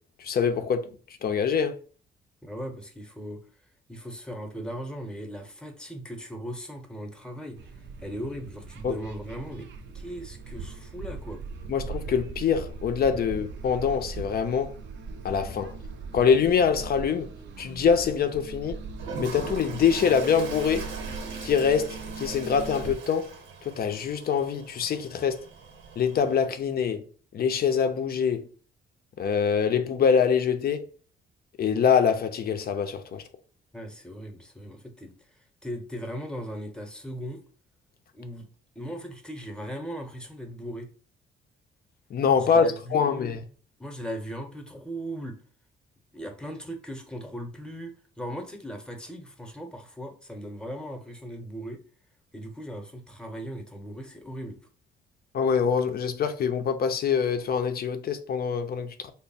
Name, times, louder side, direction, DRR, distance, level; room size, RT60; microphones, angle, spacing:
voice 1, 0.2-1.8 8.8-9.0 11.7-14.7 15.2-15.8 16.1-17.3 17.6-18.8 19.2-20.9 21.4-23.3 23.6-25.4 26.0-27.0 27.3-28.5 29.2-30.8 31.6-33.2 42.1-43.4 55.3-59.1, left 6 dB, 50° left, 0.5 m, -24 dB
voice 2, 2.4-3.4 3.9-9.7 9.9-11.4 33.7-35.1 35.6-37.4 38.1-38.5 38.7-40.9 42.4-43.4 43.8-45.4 46.1-51.8 52.3-54.6, equal, 5° left, 0.8 m, -38 dB
sound 1, 7.5-22.9, right 4 dB, 65° right, 0.5 m, -40 dB
Toilet flush, 18.9-26.5, right 5 dB, 85° right, 1.0 m, -41 dB
3.3 x 2.1 x 4.0 m
cardioid pair, 90°, 20 cm